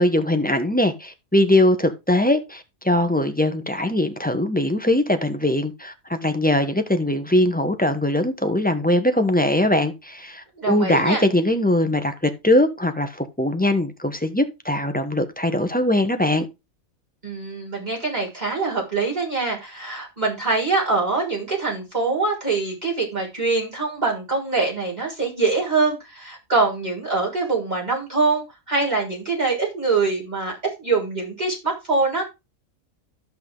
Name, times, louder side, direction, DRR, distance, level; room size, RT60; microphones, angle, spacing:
voice 1, 0.0-16.5, left 1 dB, 5° left, 1.2 m, -21 dB
voice 2, 10.6-11.2 17.2-32.2, right 3 dB, 30° right, 6.5 m, -24 dB
13.5 x 5.8 x 4.0 m
omnidirectional pair, 1.5 m